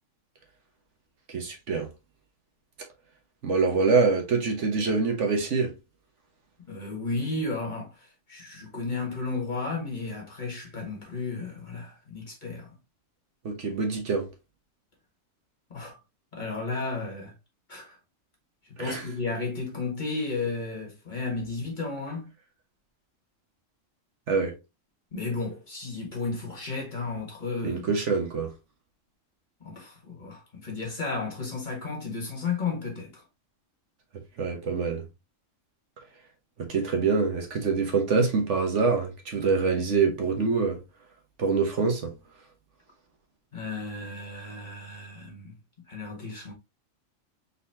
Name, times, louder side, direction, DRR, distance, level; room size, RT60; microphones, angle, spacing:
voice 1, 1.3-1.9 3.4-5.7 13.4-14.3 18.8-19.0 24.3-24.5 27.6-28.5 34.4-35.1 36.6-40.8 41.4-42.1, right 4 dB, 65° right, 1.3 m, -25 dB
voice 2, 6.7-12.8 15.7-16.0 16.3-17.3 17.7-18.0 18.6-22.3 25.1-27.9 29.6-33.2 43.5-45.5 45.9-46.5, left 3 dB, 35° left, 1.7 m, -33 dB
4.0 x 4.0 x 2.8 m
omnidirectional pair, 1.3 m